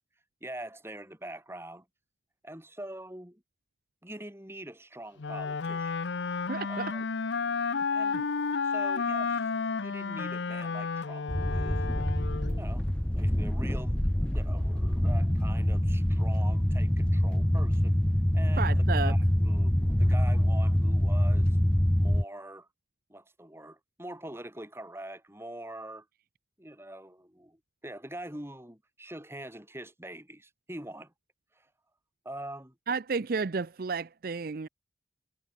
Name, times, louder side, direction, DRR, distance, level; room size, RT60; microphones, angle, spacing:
voice 1, 0.4-1.8 2.4-3.4 4.0-6.0 6.7-7.0 7.9-8.2 8.6-9.5 9.8-11.8 12.6-12.9 13.1-17.9 18.3-19.7 20.0-21.6 22.0-22.7 23.1-26.1 26.6-31.1 31.5-31.7 32.2-32.7, right 1 dB, 15° right, 3.2 m, -44 dB
Wind instrument woodwind instrument, 5.2-12.7, left 5 dB, 80° left, 0.7 m, -31 dB
voice 2, 6.5-6.9 8.1-8.2 18.6-19.1 32.9-34.7, right 4 dB, 50° right, 0.5 m, -32 dB
sound 1, 11.3-22.2, equal, 5° left, 0.4 m, -25 dB
head